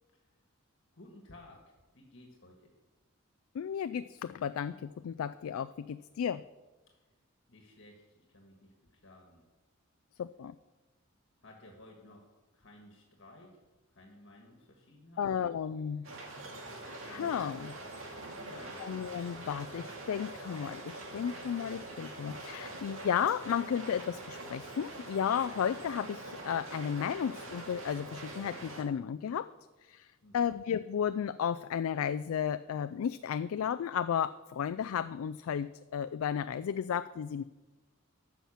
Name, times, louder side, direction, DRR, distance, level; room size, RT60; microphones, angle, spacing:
voice 1, 0.9-2.7 7.5-9.4 11.4-12.3 12.5-13.6 13.9-15.5 17.0-17.3 18.4-18.9 30.2-30.6, left 1 dB, 60° left, 1 dB, 1.7 m, -55 dB
voice 2, 3.5-6.4 10.2-10.5 15.2-16.1 17.0-17.7 18.8-29.5 29.8-30.1 30.3-37.4, left 8 dB, 80° left, 12 dB, 0.3 m, -33 dB
sound 1, 16.0-28.8, right 2 dB, 70° right, 2.1 m, -44 dB
13.0 x 5.8 x 7.2 m, 1.2 s
head